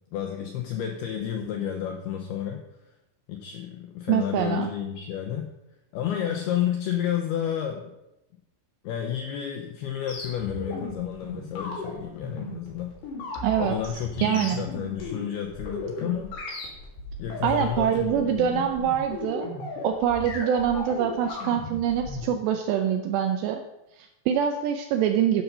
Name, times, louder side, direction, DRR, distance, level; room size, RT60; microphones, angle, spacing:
voice 1, 0.1-2.6 3.3-5.5 5.9-7.9 8.8-12.9 13.6-16.4 17.2-18.7, left 9 dB, 85° left, 2 dB, 2.2 m, -31 dB
voice 2, 4.1-4.7 13.4-13.8 14.2-14.6 17.4-19.5 19.8-23.6 24.0-25.4, right 9 dB, 85° right, 6 dB, 2.5 m, -25 dB
sound 1, 10.1-22.3, left 2 dB, 65° left, 4.6 m, -36 dB
12.5 x 5.7 x 5.4 m, 0.88 s
omnidirectional pair, 5.5 m